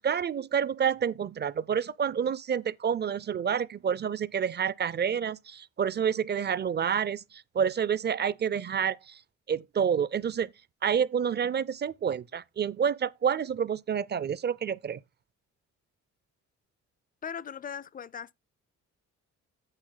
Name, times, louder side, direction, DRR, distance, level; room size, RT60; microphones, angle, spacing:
voice 1, 0.0-9.2 9.5-10.5 10.8-15.0, right 7 dB, 35° right, 0.5 m, -28 dB
voice 2, 17.2-18.3, left 7 dB, 30° left, 0.4 m, -39 dB
9.0 x 6.4 x 3.9 m
cardioid pair, 90°, 30 cm